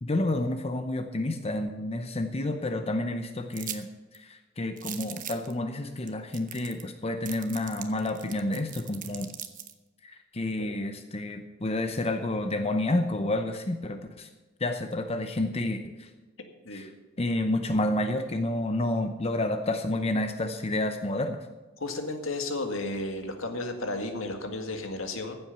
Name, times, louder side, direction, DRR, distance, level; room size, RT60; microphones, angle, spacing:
voice 1, 0.0-3.9 4.1-9.3 10.0-14.3 14.6-16.1 16.7-16.9 17.2-21.5, left 1 dB, 30° left, 7 dB, 0.7 m, -29 dB
sound 1, 3.5-3.8 4.1-4.2 4.8-5.5 6.1-6.2 6.3-6.9 7.3-9.7, right 10 dB, 40° right, 1.0 m, -39 dB
voice 2, 21.8-25.4, left 2 dB, 75° left, 5 dB, 1.9 m, -33 dB
15.0 x 7.9 x 6.8 m, 1.2 s
head